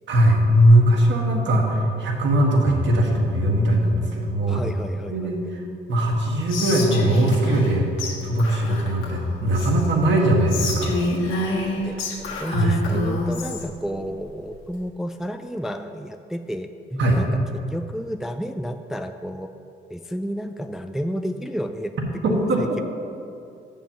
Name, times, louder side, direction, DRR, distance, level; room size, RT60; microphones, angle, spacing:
voice 1, 0.1-4.6 5.1-5.6 5.9-7.9 8.2-10.9 12.5-12.8 17.0-17.2 22.2-22.6, right 1 dB, 65° right, 0 dB, 1.6 m, -20 dB
voice 2, 4.5-5.5 11.8-17.3 17.7-19.5 19.9-21.9 22.3-22.8, equal, ahead, 7 dB, 0.3 m, -31 dB
Whispering, 6.5-7.7 8.0-8.1 8.4-9.9 10.5-13.6, left 2 dB, 85° left, 1.6 m, -28 dB
7.2 x 5.4 x 7.2 m, 2.5 s
cardioid pair, 90°, 20 cm